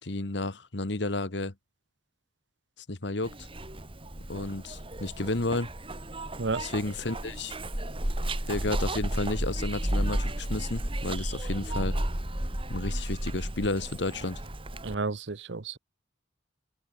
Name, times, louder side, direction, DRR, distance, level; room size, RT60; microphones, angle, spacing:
voice 1, 0.0-1.5 2.9-3.3 4.3-5.7 6.6-7.5 8.5-12.0 12.7-14.4, left 2 dB, 65° left, 1.6 m, -32 dB
Zipper (clothing), 3.2-15.0, right 1 dB, 30° right, 2.7 m, -33 dB
voice 2, 14.8-15.8, right 3 dB, 65° right, 0.9 m, -31 dB
open air
head